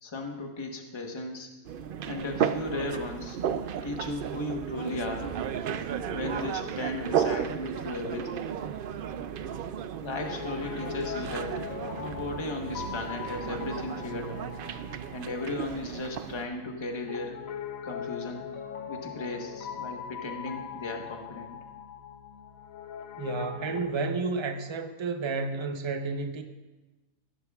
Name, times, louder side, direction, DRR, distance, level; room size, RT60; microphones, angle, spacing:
voice 1, 0.0-1.5 2.1-3.4 3.8-5.3 5.7-8.5 10.0-11.6 12.0-14.5 15.1-17.4 17.8-18.5 18.9-21.6, left 2 dB, 20° left, 1.1 m, -36 dB
sound 1, 1.6-16.5, right 8 dB, 75° right, 0.5 m, -34 dB
Piano, 10.2-23.9, left 8 dB, 70° left, 1.2 m, -41 dB
voice 2, 23.2-26.4, right 4 dB, 25° right, 0.6 m, -31 dB
17.5 x 11.5 x 2.4 m
omnidirectional pair, 1.5 m